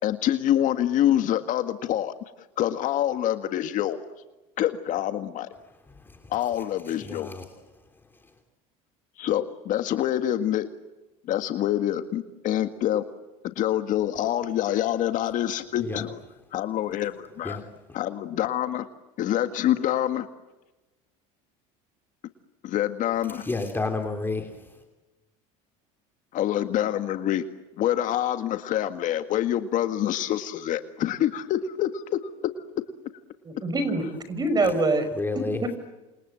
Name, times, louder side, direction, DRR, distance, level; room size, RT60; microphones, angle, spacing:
voice 1, 0.0-2.1 2.6-4.0 4.6-5.5 6.3-7.3 9.2-10.7 11.3-13.0 13.5-16.2 16.5-17.6 17.9-18.9 19.2-20.3 22.6-23.5 26.3-27.4 27.8-32.2, left 12 dB, 55° left, 1.8 m, -26 dB
voice 2, 5.9-7.5 8.1-8.3 15.8-16.1 17.4-17.6 23.3-24.8 35.1-35.6, left 3 dB, 15° left, 3.1 m, -32 dB
voice 3, 33.4-35.1, right 2 dB, 25° right, 5.8 m, -24 dB
29.0 x 26.5 x 7.7 m
supercardioid pair, 120°, 16 cm